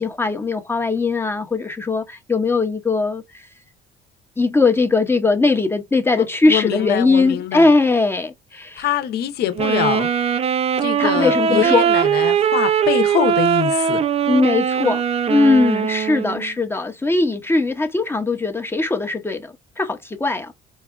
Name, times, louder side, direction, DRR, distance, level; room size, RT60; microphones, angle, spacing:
voice 1, 0.0-3.5 4.4-8.8 11.0-11.9 14.3-20.5, left 3 dB, 15° left, 0.6 m, -20 dB
voice 2, 6.1-7.7 8.8-10.1 10.8-14.0, left 11 dB, 70° left, 0.8 m, -24 dB
Wind instrument woodwind instrument, 9.6-16.5, right 8 dB, 35° right, 0.4 m, -20 dB
4.6 x 2.3 x 2.3 m
cardioid pair, 110°, 17 cm